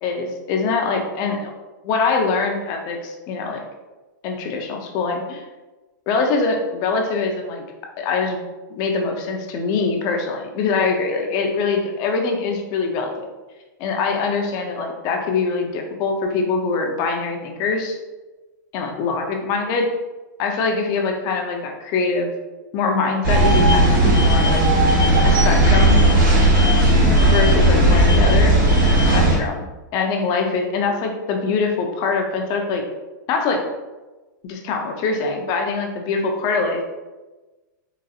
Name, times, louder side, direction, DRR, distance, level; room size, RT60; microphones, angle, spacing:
voice 1, 0.0-1.4 1.8-3.6 4.2-5.4 6.1-7.6 8.0-8.4 8.7-13.3 13.8-18.0 18.7-19.9 20.4-22.3 22.7-24.7 25.2-26.0 27.3-28.6 28.9-29.7 29.9-32.8 33.3-33.6 34.4-36.9, left 4 dB, 35° left, 2 dB, 0.6 m, -23 dB
sound 1, 23.2-29.4, right 1 dB, 85° right, 1.3 m, -15 dB
3.9 x 2.5 x 2.4 m, 1.2 s
hypercardioid pair, 135°, 11 cm